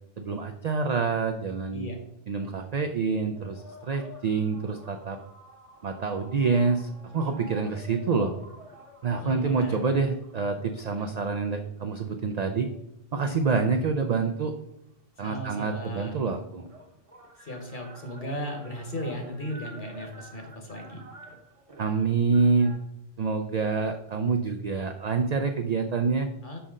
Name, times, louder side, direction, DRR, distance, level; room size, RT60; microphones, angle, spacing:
voice 1, 0.2-1.9 2.3-5.2 5.8-8.3 9.0-12.7 13.1-14.5 15.2-16.7 21.8-22.7 23.2-26.3, right 4 dB, 70° right, 5 dB, 0.4 m, -27 dB
sound 1, 3.3-12.1 12.8-14.5 15.7-15.8 16.0-22.8, right 1 dB, 30° right, 0.8 m, -50 dB
voice 2, 9.2-9.8 11.0-11.1 15.2-16.1 17.4-21.0 26.4-26.6, equal, 45° left, 4 dB, 1.2 m, -36 dB
5.7 x 5.3 x 3.7 m, 0.81 s
omnidirectional pair, 1.2 m